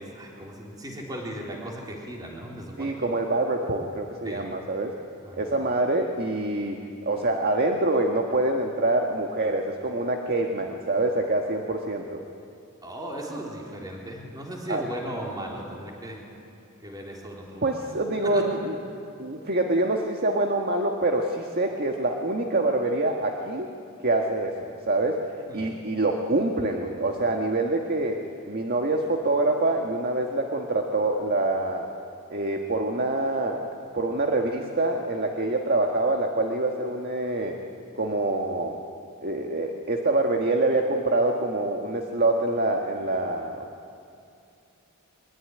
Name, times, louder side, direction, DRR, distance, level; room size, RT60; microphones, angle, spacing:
voice 1, 0.0-3.1 4.2-4.4 5.2-5.5 12.8-16.2 16.8-17.9 18.2-18.4 25.5-25.7, right 1 dB, 20° right, -2 dB, 3.8 m, -37 dB
voice 2, 2.8-5.0 5.3-6.8 7.1-12.2 14.7-14.8 17.6-18.8 19.2-23.7 24.0-25.2 25.5-28.2 28.5-31.9 32.3-37.6 38.0-38.8 39.2-43.6, right 2 dB, 45° right, 2 dB, 1.7 m, -25 dB
23.5 x 22.0 x 9.7 m, 2.6 s
head